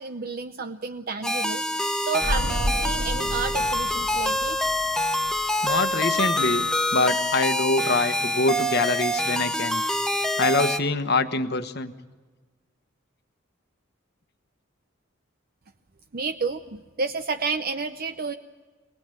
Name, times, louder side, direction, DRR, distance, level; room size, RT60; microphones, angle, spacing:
voice 1, 0.0-4.6 16.1-18.3, right 4 dB, 45° right, 7 dB, 0.7 m, -31 dB
sound 1, 1.2-10.8, left 1 dB, 5° left, 0.8 m, -26 dB
sound 2, 2.2-6.0 6.2-6.3, equal, 75° right, 2.1 m, -31 dB
voice 2, 5.6-6.6 6.9-9.8 10.4-11.9, left 3 dB, 50° left, 9 dB, 1.2 m, -24 dB
24.0 x 19.0 x 9.2 m, 1.3 s
head